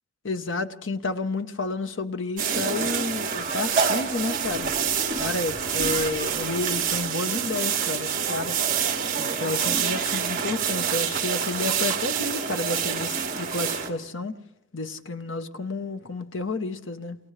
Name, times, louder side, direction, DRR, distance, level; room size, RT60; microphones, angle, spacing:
voice 1, 0.2-4.7 5.2-8.6 9.2-14.4 14.7-17.2, left 3 dB, 70° left, 1.0 m, -31 dB
sound 1, 2.4-13.9, right 7 dB, 40° right, 2.4 m, -27 dB
29.0 x 28.0 x 3.3 m
head